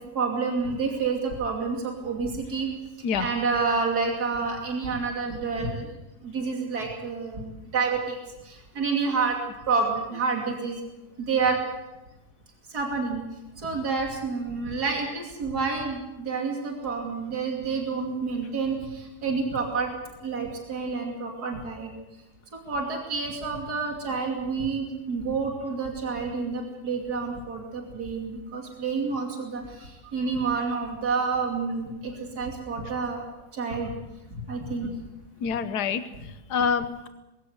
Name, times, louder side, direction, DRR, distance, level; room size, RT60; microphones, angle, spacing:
voice 1, 0.1-2.7 3.2-5.9 6.2-8.2 8.4-9.4 9.7-10.8 11.2-11.6 12.7-13.2 13.6-19.9 20.2-21.9 22.6-33.2 33.5-33.9 34.3-34.9, right 4 dB, 70° right, 1 dB, 3.3 m, -29 dB
voice 2, 35.4-37.1, left 6 dB, 80° left, 11 dB, 1.6 m, -27 dB
21.0 x 16.5 x 8.0 m, 1.0 s
omnidirectional pair, 1.7 m